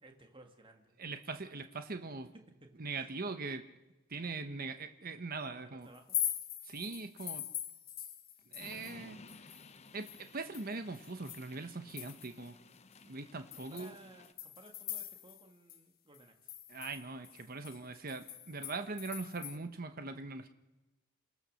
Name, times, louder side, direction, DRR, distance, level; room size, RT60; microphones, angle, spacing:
voice 1, 0.0-1.0 2.6-3.2 5.5-6.2 13.5-16.5, right 1 dB, 25° right, 4 dB, 1.8 m, -58 dB
voice 2, 1.0-2.3 2.8-3.6 4.1-5.9 6.6-7.5 8.5-9.2 9.9-12.5 13.0-13.9 16.7-20.5, right 3 dB, 45° right, 8 dB, 1.0 m, -41 dB
sound 1, 5.9-9.0 9.3-12.5 12.9-13.0 13.5-15.4 15.7-15.8 16.1-19.6, left 11 dB, 45° left, 1.6 m, -42 dB
sound 2, 8.6-14.3, left 3 dB, 30° left, 0.8 m, -56 dB
27.0 x 17.0 x 6.5 m, 1.0 s
head